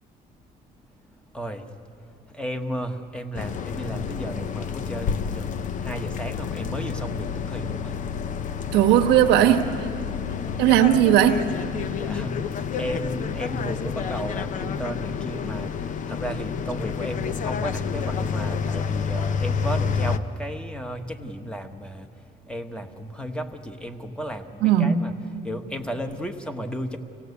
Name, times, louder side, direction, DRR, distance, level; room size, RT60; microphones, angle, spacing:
voice 1, 1.1-1.8 2.0-8.0 11.9-25.1 25.4-27.0, equal, 5° left, 6 dB, 1.3 m, -34 dB
sound 1, 3.3-20.2, left 6 dB, 50° left, 0.8 m, -29 dB
voice 2, 8.7-9.9 10.6-11.5 24.6-25.0, right 11 dB, 85° right, 6 dB, 1.3 m, -18 dB
25.5 x 17.0 x 8.2 m, 2.7 s
cardioid pair, 110°, 17 cm